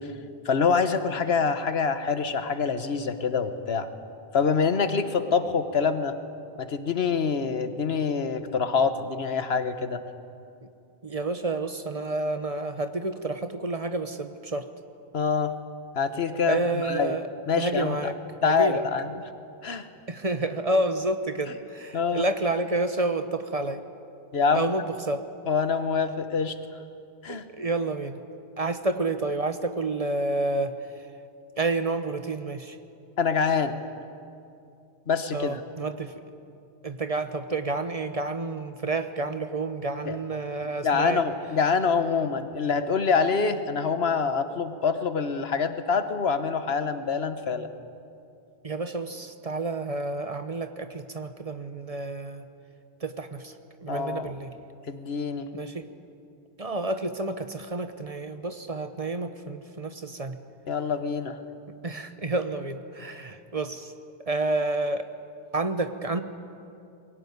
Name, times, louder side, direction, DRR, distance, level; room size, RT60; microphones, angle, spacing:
voice 1, 0.4-3.9 4.3-6.2 6.6-10.0 15.1-15.5 15.9-17.2 17.5-18.1 18.4-19.1 19.6-19.9 21.9-22.2 24.3-24.7 25.5-26.6 27.2-27.4 33.2-33.8 35.1-35.6 40.0-40.2 40.8-47.7 53.9-54.3 54.9-55.5 60.7-61.4, left 5 dB, 80° left, 10 dB, 1.4 m, -25 dB
voice 2, 11.0-14.7 16.5-17.3 17.6-18.2 18.4-18.9 20.1-23.8 24.5-25.3 27.3-28.2 28.6-30.8 31.6-32.8 35.3-36.1 36.8-41.2 48.6-52.4 53.0-53.5 53.8-54.5 55.5-55.8 56.6-60.4 61.8-63.9 64.3-65.1 65.5-66.2, right 2 dB, 35° right, 9 dB, 1.0 m, -29 dB
22.0 x 17.0 x 9.5 m, 2.5 s
omnidirectional pair, 1.0 m